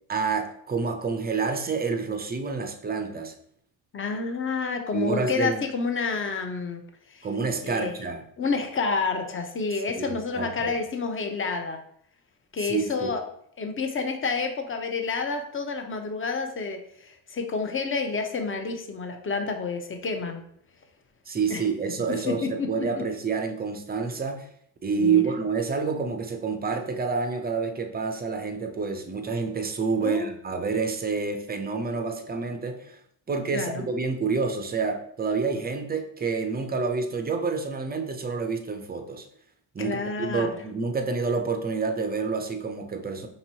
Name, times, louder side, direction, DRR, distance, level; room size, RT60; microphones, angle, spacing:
voice 1, 0.1-3.3 4.9-5.6 7.2-8.2 10.0-10.7 12.6-13.1 21.3-24.5 24.8-33.0 33.3-39.3 39.7-43.3, right 5 dB, 20° right, 6 dB, 0.5 m, -28 dB
voice 2, 3.9-6.8 7.1-7.3 7.6-7.9 8.4-11.8 12.5-13.2 13.6-20.4 21.5-21.6 22.1-22.9 24.9-25.2 30.0-30.3 33.5-33.8 39.8-40.5, left 4 dB, 25° left, 5 dB, 0.7 m, -29 dB
5.2 x 2.9 x 2.8 m, 0.67 s
cardioid pair, 90°, 46 cm